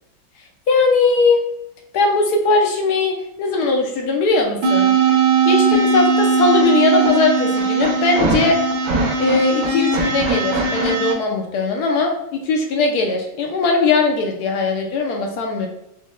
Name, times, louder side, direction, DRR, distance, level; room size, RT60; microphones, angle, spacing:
voice 1, 0.7-1.4 1.9-4.9 5.4-8.6 9.2-15.7, left 3 dB, 65° left, 2 dB, 1.1 m, -19 dB
sound 1, 4.6-11.1, right 4 dB, 75° right, 1.6 m, -18 dB
5.2 x 3.5 x 2.2 m, 0.80 s
omnidirectional pair, 2.1 m